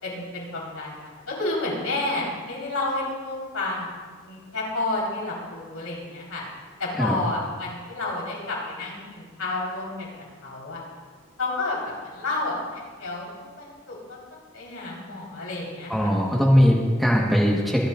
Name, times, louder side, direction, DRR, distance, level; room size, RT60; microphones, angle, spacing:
voice 1, 0.0-6.4 6.8-10.1 10.4-10.8 11.4-13.3 13.6-16.1, left 2 dB, 85° left, -4 dB, 4.3 m, -30 dB
voice 2, 15.9-17.9, equal, ahead, -3 dB, 1.4 m, -20 dB
24.5 x 9.9 x 2.5 m, 1.5 s
head